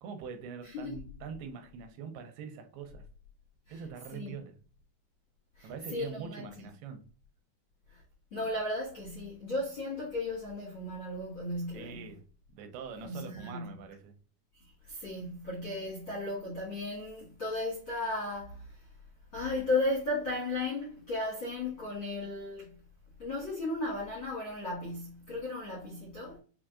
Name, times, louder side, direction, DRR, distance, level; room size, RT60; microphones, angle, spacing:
voice 1, 0.0-3.1 3.7-4.6 5.6-7.0 11.7-12.2 12.5-14.2, right 6 dB, 90° right, 2.7 m, -43 dB
voice 2, 0.6-1.0 3.7-3.8 4.1-4.4 5.6-6.7 7.9-8.0 8.3-12.1 13.0-13.7 14.9-18.8 19.3-22.8 23.2-26.4, left 2 dB, 60° left, 1.4 m, -35 dB
6.3 x 3.0 x 2.4 m
omnidirectional pair, 4.6 m